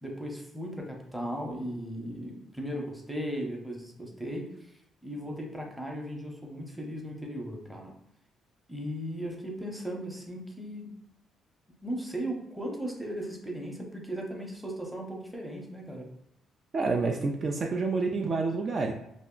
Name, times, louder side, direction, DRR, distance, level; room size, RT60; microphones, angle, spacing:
voice 1, 0.0-7.9 8.7-11.0 11.8-16.1, equal, 5° right, 0 dB, 0.7 m, -37 dB
voice 2, 16.7-18.9, right 3 dB, 45° right, 1 dB, 0.3 m, -28 dB
2.4 x 2.1 x 3.7 m, 0.80 s
cardioid pair, 90°, 0 cm